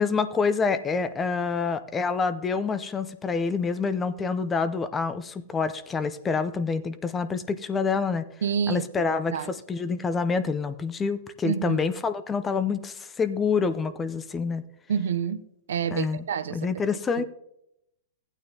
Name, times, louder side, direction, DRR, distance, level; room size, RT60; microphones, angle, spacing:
voice 1, 0.0-8.2 8.7-14.6 15.9-16.2 16.5-17.2, left 5 dB, 20° left, 0.6 m, -27 dB
voice 2, 8.4-9.5 11.4-11.8 14.9-15.4 15.7-16.7 17.2-17.3, right 7 dB, 80° right, 0.6 m, -28 dB
15.0 x 9.0 x 2.8 m
hypercardioid pair, 125°, 0 cm